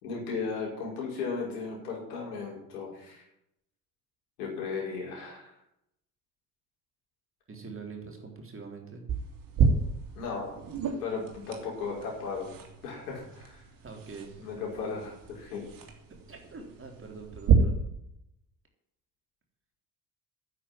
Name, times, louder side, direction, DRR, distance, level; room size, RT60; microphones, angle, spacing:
voice 1, 0.0-3.2 4.4-5.5 10.1-10.6 11.0-12.5 12.8-13.6 14.4-15.7, left 4 dB, 70° left, -3 dB, 5.8 m, -36 dB
voice 2, 7.5-9.0 13.8-14.5 16.3-17.8, right 4 dB, 25° right, 1 dB, 3.9 m, -44 dB
sound 1, 9.1-17.5, right 6 dB, 45° right, 3.1 m, -32 dB
9.8 x 8.4 x 9.9 m, 0.79 s
figure-of-eight pair, 55°, 47 cm